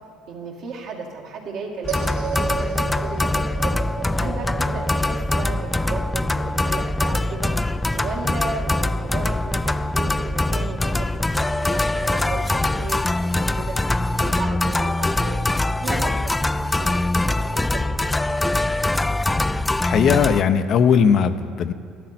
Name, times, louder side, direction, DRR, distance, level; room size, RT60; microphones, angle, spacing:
voice 1, 0.3-3.8 4.2-7.5 7.9-11.1 11.3-16.5 16.8-18.4, right 4 dB, 70° right, -1 dB, 2.0 m, -35 dB
sound 1, 1.8-20.4, left 2 dB, 15° left, 0.3 m, -23 dB
sound 2, 1.9-12.3, right 5 dB, 85° right, 1.5 m, -36 dB
voice 2, 19.8-21.7, left 7 dB, 55° left, 10 dB, 0.6 m, -18 dB
12.5 x 12.0 x 4.3 m, 2.3 s
supercardioid pair, 80°, 0 cm